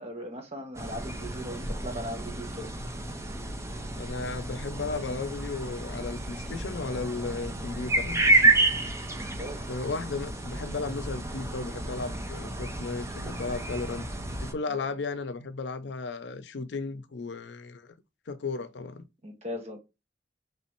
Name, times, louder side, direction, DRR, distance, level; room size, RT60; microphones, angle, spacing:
voice 1, 0.0-2.7 9.2-9.6 14.7-14.9 19.2-19.8, equal, 40° right, 1.3 m, -39 dB
sound 1, 0.7-14.5, right 2 dB, 15° right, 0.6 m, -30 dB
voice 2, 4.0-8.6 9.7-14.1 14.4-17.9 18.3-19.1, left 3 dB, 85° left, 0.5 m, -35 dB
3.3 x 3.1 x 4.3 m
head